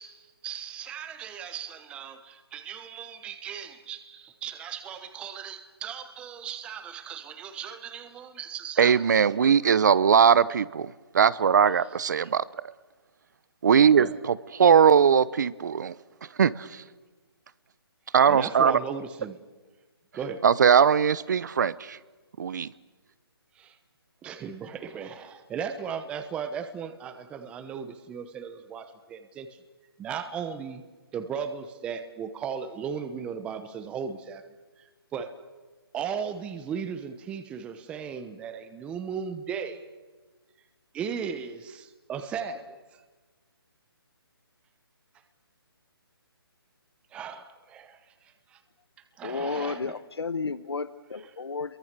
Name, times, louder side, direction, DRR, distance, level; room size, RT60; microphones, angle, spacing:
voice 1, 0.0-9.0 14.0-14.2 18.3-19.4 20.1-20.4 23.6-23.8 24.2-29.6 30.0-30.8 31.1-34.4 35.1-35.3 35.9-39.9 40.9-43.0 47.1-48.0 48.5-48.6 49.2-50.0, right 7 dB, 10° right, 10 dB, 1.0 m, -36 dB
voice 2, 8.8-12.4 13.6-15.9 16.4-16.8 18.1-18.8 20.4-22.0 22.4-22.7, right 7 dB, 45° right, 19 dB, 0.8 m, -20 dB
voice 3, 49.2-51.8, left 4 dB, 85° left, 13 dB, 1.2 m, -32 dB
29.5 x 23.0 x 6.8 m, 1.3 s
hypercardioid pair, 165°, 13 cm